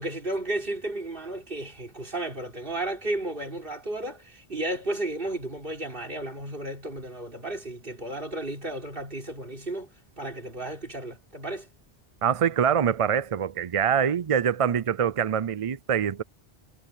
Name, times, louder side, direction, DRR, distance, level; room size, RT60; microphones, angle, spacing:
voice 1, 0.0-11.7, right 1 dB, 60° right, 3.9 m, -33 dB
voice 2, 12.2-16.2, right 8 dB, 45° right, 0.5 m, -24 dB
omnidirectional pair, 1.0 m